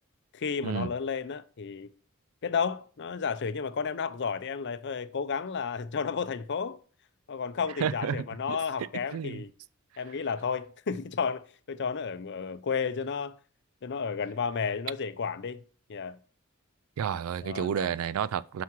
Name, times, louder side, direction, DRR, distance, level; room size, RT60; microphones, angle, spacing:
voice 1, 0.3-1.9 2.4-6.8 7.3-9.5 10.0-13.3 13.8-15.6 15.9-16.2 17.4-17.9, left 6 dB, 55° left, 0.5 m, -32 dB
voice 2, 7.8-8.6 9.1-9.4 17.0-18.6, right 7 dB, 70° right, 0.3 m, -31 dB
9.5 x 5.8 x 3.1 m
head